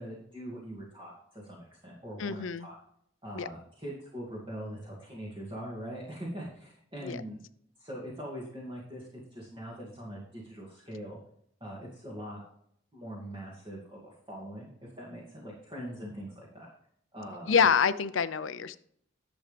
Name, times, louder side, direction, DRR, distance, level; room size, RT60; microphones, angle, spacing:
voice 1, 0.0-2.7 3.2-7.4 7.8-11.2 11.6-12.4 12.9-16.7 17.1-17.6, equal, 25° right, -5 dB, 2.2 m, -42 dB
voice 2, 2.2-2.7 3.3-3.5 7.0-7.2 17.5-18.8, left 6 dB, 80° left, 14 dB, 0.6 m, -26 dB
11.5 x 7.2 x 3.4 m, 0.69 s
head